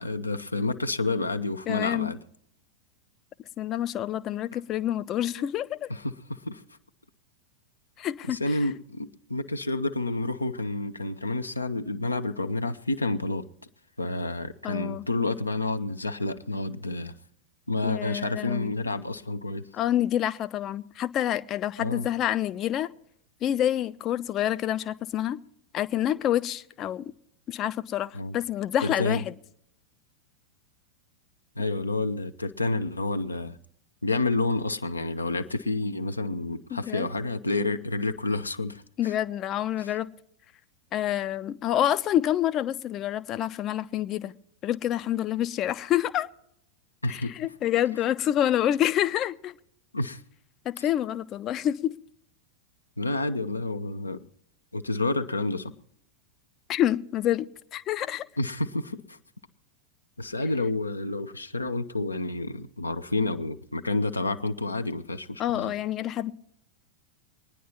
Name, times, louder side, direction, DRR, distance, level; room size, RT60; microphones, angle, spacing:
voice 1, 0.0-2.2 5.4-5.5 5.9-6.6 8.3-13.5 14.0-17.2 17.7-19.6 21.8-22.1 28.1-28.3 28.8-29.2 31.6-33.6 34.0-39.2 39.8-39.9 47.0-47.3 49.9-50.2 50.8-50.9 53.0-54.2 54.7-55.7 58.4-59.2 60.2-65.7, left 2 dB, 80° left, 0.6 m, -29 dB
voice 2, 1.7-2.1 3.6-5.9 8.0-8.4 14.6-15.1 17.8-18.7 19.7-22.9 23.4-25.4 25.7-27.0 27.5-29.3 36.7-37.1 39.0-40.1 40.9-44.3 44.6-46.3 47.1-49.5 50.7-51.9 56.7-58.3 65.4-66.3, left 11 dB, 30° left, 0.5 m, -27 dB
24.0 x 10.0 x 2.9 m
figure-of-eight pair, 90°, 0 cm